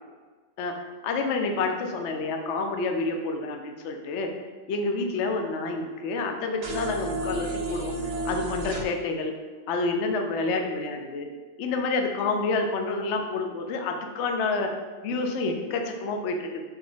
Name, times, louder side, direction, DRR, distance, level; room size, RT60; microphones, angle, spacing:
voice 1, 1.0-4.3 4.7-7.9 8.2-9.3 9.7-11.3 11.6-14.7 15.0-16.6, left 3 dB, 70° left, 4 dB, 0.6 m, -28 dB
sound 1, 6.6-8.8, right 2 dB, 55° right, 1.1 m, -32 dB
4.6 x 4.5 x 5.1 m, 1.4 s
omnidirectional pair, 2.1 m